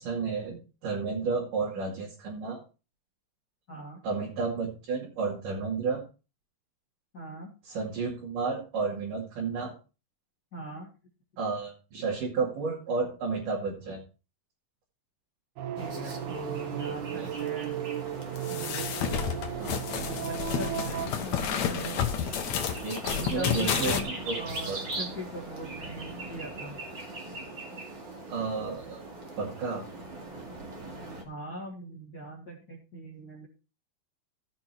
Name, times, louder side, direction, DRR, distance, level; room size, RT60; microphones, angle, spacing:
voice 1, 0.0-2.6 4.0-6.0 7.7-9.7 11.4-14.0 17.2-17.3 19.6-19.8 22.8-24.0 24.3-24.4 24.7-24.8 28.3-29.0 29.4-29.8 30.3-30.4, right 4 dB, 55° right, -3 dB, 3.8 m, -32 dB
voice 2, 3.7-4.0 7.1-7.5 10.5-10.9 15.8-17.8 18.5-19.3 20.0-22.0 23.0-26.8 31.2-33.5, right 1 dB, 25° left, -4 dB, 2.9 m, -40 dB
sound 1, 15.6-21.1, right 10 dB, 90° right, 1.7 m, -35 dB
sound 2, 15.8-31.2, right 2 dB, 35° right, 2.3 m, -40 dB
sound 3, 18.4-24.0, left 9 dB, 65° left, 2.0 m, -31 dB
15.5 x 6.0 x 4.5 m, 0.32 s
omnidirectional pair, 4.5 m